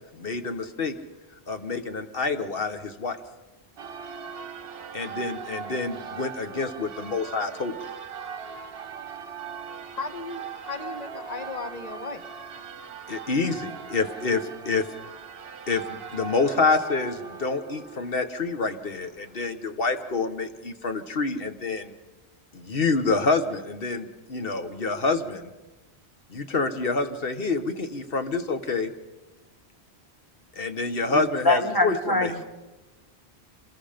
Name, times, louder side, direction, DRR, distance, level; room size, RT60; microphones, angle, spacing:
voice 1, 0.1-0.9 1.5-3.2 4.9-7.8 13.1-14.9 15.7-21.9 22.5-25.5 26.3-28.9 30.6-32.3, left 3 dB, 60° left, 7 dB, 1.4 m, -27 dB
Church bell, 3.8-19.5, right 7 dB, 65° right, 1.0 m, -40 dB
voice 2, 9.9-12.2, left 4 dB, 40° left, 7 dB, 1.4 m, -36 dB
voice 3, 31.1-32.4, left 2 dB, 20° left, 3 dB, 1.7 m, -24 dB
26.5 x 20.0 x 5.2 m, 1.1 s
omnidirectional pair, 1.1 m